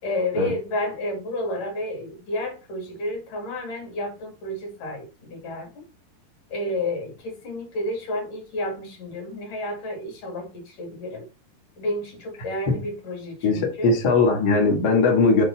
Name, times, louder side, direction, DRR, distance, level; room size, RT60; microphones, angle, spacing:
voice 1, 0.0-5.9 6.5-11.3 11.8-14.0, left 1 dB, 55° left, 2 dB, 3.5 m, -31 dB
voice 2, 13.4-15.4, left 3 dB, 40° left, -1 dB, 1.5 m, -19 dB
6.5 x 3.8 x 5.8 m, 0.31 s
omnidirectional pair, 4.8 m